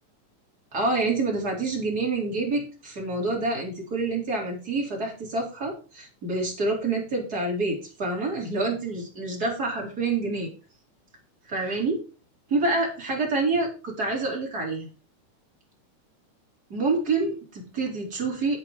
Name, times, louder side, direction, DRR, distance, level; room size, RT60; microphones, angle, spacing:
voice 1, 0.7-10.5 11.5-12.0 12.5-14.9 16.7-18.6, right 3 dB, 30° right, -1 dB, 4.1 m, -27 dB
9.6 x 8.5 x 5.0 m, 0.36 s
omnidirectional pair, 3.7 m